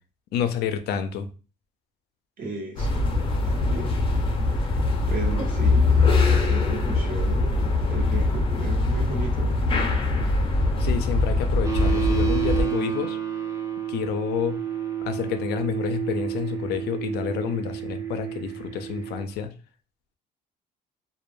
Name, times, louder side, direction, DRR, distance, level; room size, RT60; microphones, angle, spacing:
voice 1, 0.3-1.3 10.8-13.2 13.9-14.6 15.0-19.5, left 8 dB, 75° left, 0.4 m, -29 dB
voice 2, 2.4-3.1 3.4-4.0 5.1-6.0 6.5-9.8, right 3 dB, 55° right, 1.0 m, -34 dB
sound 1, 2.8-12.6, left 3 dB, 30° left, 0.6 m, -22 dB
sound 2, 11.6-19.2, right 9 dB, 20° right, 0.5 m, -30 dB
2.3 x 2.1 x 3.0 m
cardioid pair, 110°, 17 cm